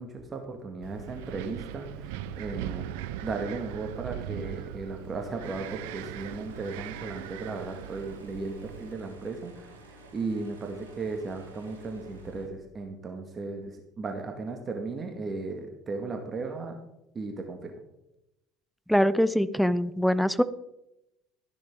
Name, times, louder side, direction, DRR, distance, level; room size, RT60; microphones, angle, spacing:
voice 1, 0.0-2.9 3.2-16.8 17.1-17.7, right 3 dB, 30° right, 4 dB, 2.0 m, -36 dB
Wind, 0.8-8.9, right 11 dB, 65° right, 0.7 m, -39 dB
sound 1, 5.4-12.5, right 1 dB, 80° right, 2.4 m, -51 dB
voice 2, 18.9-20.4, equal, ahead, 14 dB, 0.8 m, -23 dB
14.0 x 11.5 x 3.9 m, 0.87 s
figure-of-eight pair, 60°, 0 cm